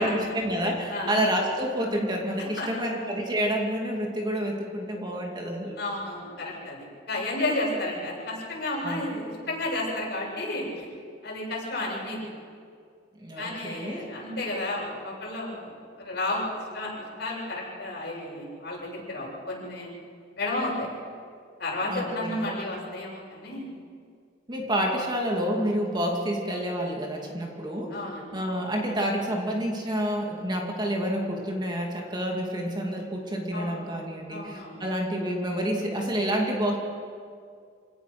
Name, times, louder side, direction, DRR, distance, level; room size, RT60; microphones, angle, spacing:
voice 1, 0.0-5.8 8.8-9.1 13.2-14.1 21.9-22.5 24.5-28.0 28.3-36.8, equal, 25° right, 0 dB, 2.6 m, -28 dB
voice 2, 2.4-2.7 5.8-10.9 11.2-12.3 13.4-15.7 16.0-16.4 16.7-19.9 20.4-20.9 21.6-23.7 27.9-28.4 33.5-33.8 34.3-34.8, left 2 dB, 60° left, -4 dB, 7.8 m, -32 dB
27.5 x 18.0 x 6.1 m, 2.2 s
head